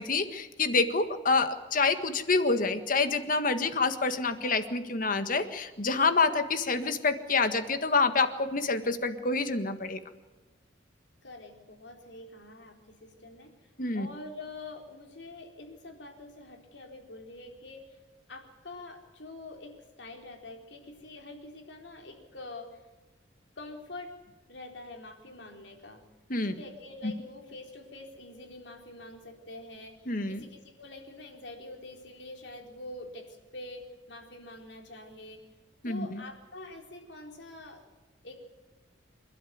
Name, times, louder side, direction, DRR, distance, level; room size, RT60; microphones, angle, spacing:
voice 1, 0.0-10.0 13.8-14.1 26.3-26.5 30.1-30.4 35.8-36.2, left 4 dB, 45° left, 9 dB, 1.7 m, -27 dB
voice 2, 11.2-18.0 18.3-22.8 23.6-24.1 24.5-26.0 26.4-35.4 35.8-37.8 38.2-38.4, left 2 dB, 65° left, 3 dB, 4.1 m, -46 dB
27.5 x 12.5 x 9.5 m, 1.2 s
head